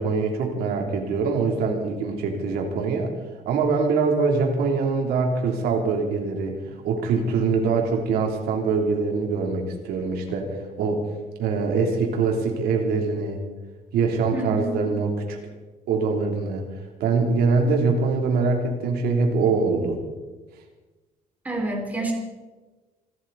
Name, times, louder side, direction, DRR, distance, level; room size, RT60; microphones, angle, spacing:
voice 1, 0.0-3.1 3.4-6.5 6.8-10.5 10.8-11.0 11.4-13.4 13.9-15.4 15.9-16.6 17.0-20.0, right 4 dB, 80° right, 2 dB, 3.2 m, -23 dB
voice 2, 14.3-14.9 21.4-22.1, right 2 dB, 10° right, 0 dB, 3.0 m, -28 dB
27.0 x 13.0 x 4.1 m, 1.2 s
cardioid pair, 160°, 16 cm